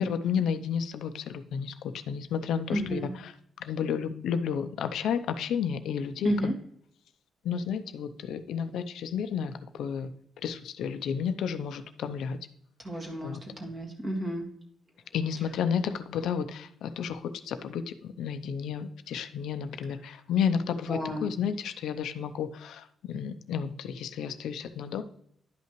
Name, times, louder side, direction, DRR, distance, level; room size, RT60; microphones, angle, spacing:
voice 1, 0.0-3.3 3.6-6.3 7.4-10.1 10.4-12.4 13.2-13.4 15.1-25.0, left 7 dB, 80° left, 10 dB, 0.5 m, -31 dB
voice 2, 2.7-3.1 6.2-6.5 12.8-14.5 20.9-21.3, right 1 dB, 25° right, 1 dB, 1.8 m, -31 dB
11.0 x 5.7 x 3.0 m, 0.68 s
wide cardioid pair, 170°, 0 cm